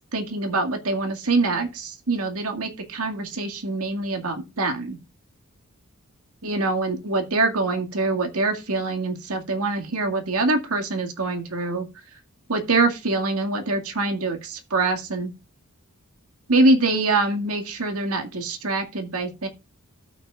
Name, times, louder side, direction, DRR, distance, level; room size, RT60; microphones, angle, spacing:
voice 1, 0.1-5.0 6.4-11.9 12.5-15.3 16.5-19.5, right 2 dB, 85° right, 5 dB, 2.1 m, -24 dB
18.0 x 6.1 x 2.5 m, 0.26 s
head